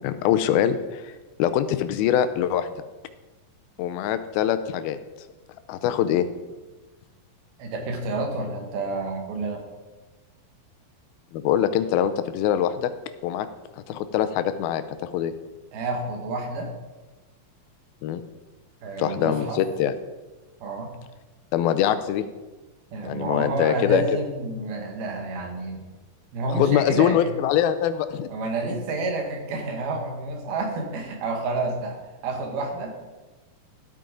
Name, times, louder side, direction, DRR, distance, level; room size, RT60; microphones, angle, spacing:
voice 1, 0.0-2.7 3.8-5.0 5.7-6.3 11.3-12.9 13.2-13.5 13.9-15.3 18.0-18.2 19.0-20.0 21.5-22.2 23.0-24.2 26.6-28.3, left 10 dB, 85° left, 11 dB, 2.5 m, -23 dB
voice 2, 7.6-9.7 15.7-16.7 18.8-19.6 20.6-20.9 22.9-25.9 26.3-27.3 28.3-32.0 32.2-32.9, right 2 dB, 85° right, 2 dB, 3.6 m, -29 dB
12.5 x 8.6 x 3.9 m, 1.2 s
omnidirectional pair, 4.2 m